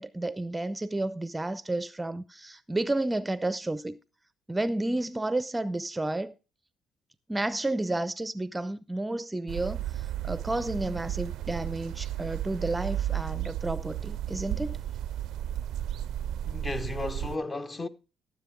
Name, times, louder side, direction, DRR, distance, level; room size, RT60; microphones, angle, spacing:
voice 1, 0.0-4.0 4.5-6.3 7.3-14.8, right 2 dB, 15° right, 0.5 m, -31 dB
sound 1, 9.5-17.4, right 11 dB, 75° right, 0.4 m, -33 dB
voice 2, 16.5-17.9, left 2 dB, 30° left, 0.9 m, -34 dB
13.5 x 7.3 x 3.5 m
supercardioid pair, 70°, 0 cm